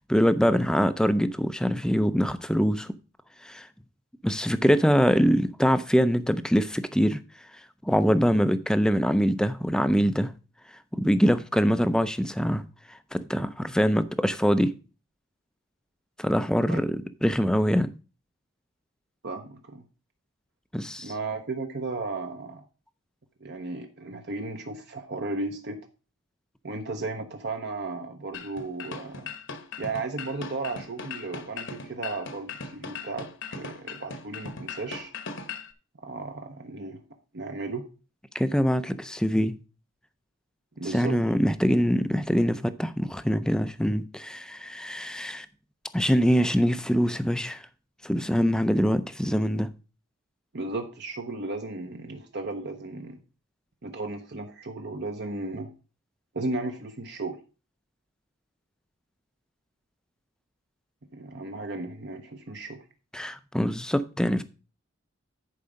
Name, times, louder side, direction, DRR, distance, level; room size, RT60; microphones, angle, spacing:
voice 1, 0.1-2.9 3.4-3.7 4.2-7.2 7.8-10.3 10.9-14.7 16.2-17.9 20.7-21.1 38.3-39.6 40.9-45.5 45.9-47.7 48.0-49.7 63.1-64.4, equal, 5° left, 0.4 m, -24 dB
voice 2, 19.2-19.8 21.0-22.6 23.4-25.8 26.6-29.3 29.8-35.1 36.0-37.0 37.3-37.8 40.8-41.2 50.5-53.2 53.8-55.7 56.3-57.4 61.1-62.8, right 3 dB, 50° right, 0.8 m, -35 dB
sound 1, 28.3-35.7, left 4 dB, 60° left, 1.1 m, -39 dB
10.5 x 4.8 x 5.3 m
head